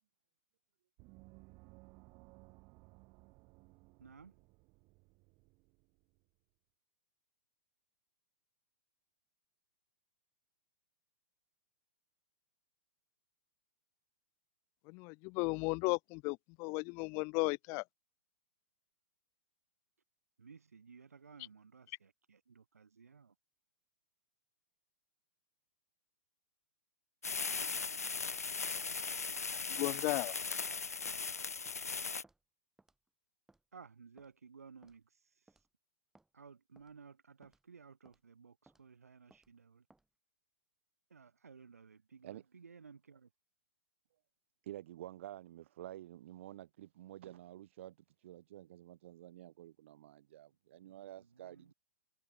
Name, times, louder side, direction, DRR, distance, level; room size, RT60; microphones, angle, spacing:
Gong, 1.0-6.2, right 27 dB, 35° right, 6.6 m, -61 dB
voice 1, 4.0-4.4 20.4-23.3 33.7-35.1 36.3-39.8 41.1-43.3 50.8-51.7, right 5 dB, 75° right, 1.9 m, -57 dB
voice 2, 14.9-17.8 29.7-30.4, left 30 dB, 35° left, 0.4 m, -35 dB
sound 1, 27.2-32.2, left 5 dB, 80° left, 0.7 m, -38 dB
Walk footsteps, 31.1-31.2 31.7-31.8 32.2-32.4 32.8-33.1 33.5-33.6 34.2-34.3 34.8-35.0 35.5-35.7 36.1-36.3 36.8-36.9 37.4-37.6 38.0-38.2 38.7-38.8 39.3-39.5 39.9-40.1, right 2 dB, 5° right, 4.3 m, -66 dB
voice 3, 44.6-51.7, right 13 dB, 55° right, 0.6 m, -50 dB
figure-of-eight pair, 110°, 8 cm